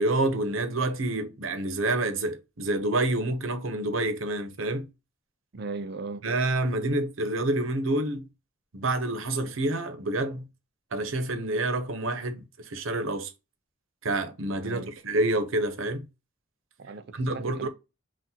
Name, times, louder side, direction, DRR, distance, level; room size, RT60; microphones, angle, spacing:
voice 1, 0.0-4.9 6.2-8.3 8.7-10.5 10.9-13.3 14.0-16.0 17.2-17.7, right 2 dB, 75° right, 0.9 m, -28 dB
voice 2, 5.5-6.2 14.6-14.9 16.8-17.7, right 3 dB, 55° right, 0.5 m, -37 dB
5.9 x 2.4 x 2.8 m
head